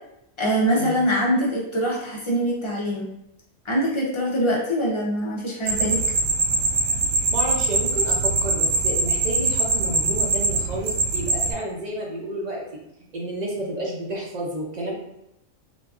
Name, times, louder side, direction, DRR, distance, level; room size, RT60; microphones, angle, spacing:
voice 1, 0.4-3.1 3.7-6.0, equal, 50° left, -4 dB, 0.3 m, -23 dB
sound 1, 5.7-11.5, right 3 dB, 80° right, 1.0 m, -23 dB
voice 2, 7.3-12.6 13.1-14.9, right 1 dB, 50° right, -2 dB, 0.5 m, -30 dB
3.8 x 2.4 x 2.4 m, 0.85 s
omnidirectional pair, 1.4 m